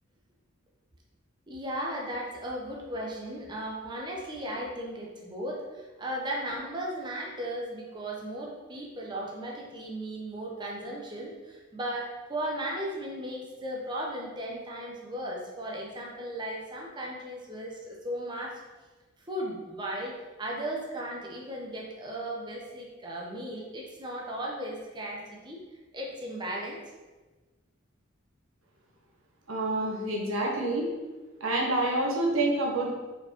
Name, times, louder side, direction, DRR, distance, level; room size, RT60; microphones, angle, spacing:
voice 1, 1.5-18.6 19.3-25.6 25.9-26.8, right 1 dB, 20° right, -2 dB, 0.9 m, -36 dB
voice 2, 29.5-30.8 31.4-32.9, right 2 dB, 80° right, -2 dB, 1.4 m, -27 dB
5.2 x 4.5 x 4.4 m, 1.2 s
head